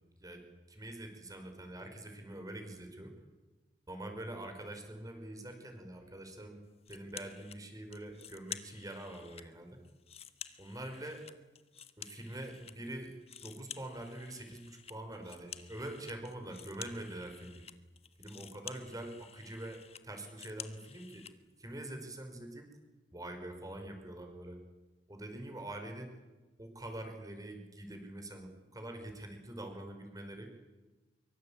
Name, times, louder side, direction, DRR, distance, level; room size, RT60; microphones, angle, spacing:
voice 1, 0.2-3.1 3.9-6.6 6.9-9.8 10.6-11.3 12.0-17.6 18.2-21.3 21.6-22.7 23.1-24.6 25.1-26.1 26.6-30.5, right 1 dB, 20° right, 5 dB, 5.3 m, -45 dB
sound 1, 6.8-7.6 7.9-9.5 9.8-12.7 13.0-21.3, left 8 dB, 35° left, 1.5 m, -50 dB
25.0 x 24.0 x 8.8 m, 1.2 s
head